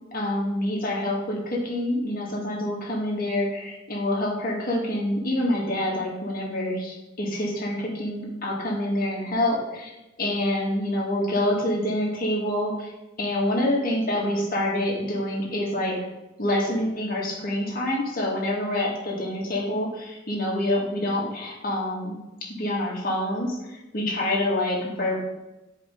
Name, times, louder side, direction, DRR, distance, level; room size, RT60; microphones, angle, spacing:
voice 1, 0.1-9.9 10.2-12.9 13.2-16.0 16.4-25.2, left 1 dB, 50° left, -3 dB, 2.3 m, -26 dB
11.0 x 5.0 x 3.8 m, 0.99 s
head